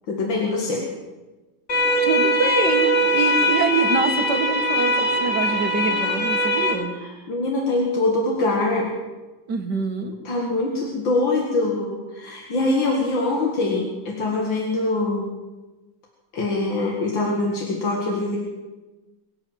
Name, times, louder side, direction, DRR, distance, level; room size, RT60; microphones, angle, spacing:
voice 1, 0.1-0.8 7.0-8.9 10.2-15.3 16.3-18.4, left 2 dB, 90° left, -1 dB, 2.8 m, -23 dB
sound 1, 1.7-6.7, equal, 70° left, 4.0 m, -21 dB
voice 2, 2.0-7.0 9.5-10.1, right 3 dB, 60° right, 4 dB, 2.3 m, -25 dB
22.5 x 8.4 x 7.5 m, 1.1 s
omnidirectional pair, 2.0 m